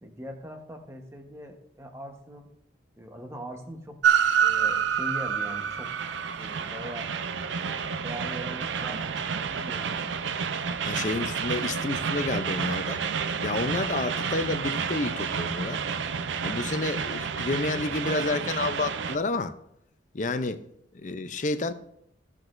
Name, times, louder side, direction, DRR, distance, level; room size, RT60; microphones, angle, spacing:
voice 1, 0.0-2.5 3.0-4.0 4.4-7.1 7.5-10.2 16.7-16.8, equal, 15° right, 4 dB, 1.0 m, -41 dB
Train, 4.0-19.2, right 7 dB, 75° right, 0.5 m, -29 dB
voice 2, 10.9-13.0 13.4-15.8 16.4-19.5 20.1-20.6 20.9-21.7, left 3 dB, 40° left, 11 dB, 0.5 m, -30 dB
16.0 x 6.1 x 2.5 m, 0.76 s
head